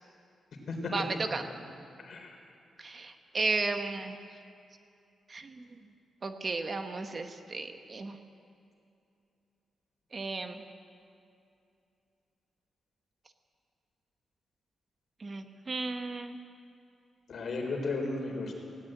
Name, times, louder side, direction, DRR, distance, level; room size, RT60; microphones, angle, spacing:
voice 1, 0.9-1.4 2.8-4.2 5.3-5.7 6.2-8.2 10.1-10.6 15.2-16.4, right 3 dB, 30° right, 7 dB, 1.0 m, -34 dB
voice 2, 2.0-2.3 17.3-18.5, left 3 dB, 50° left, 2 dB, 4.0 m, -34 dB
18.5 x 16.5 x 8.9 m, 2.7 s
wide cardioid pair, 150°, 0 cm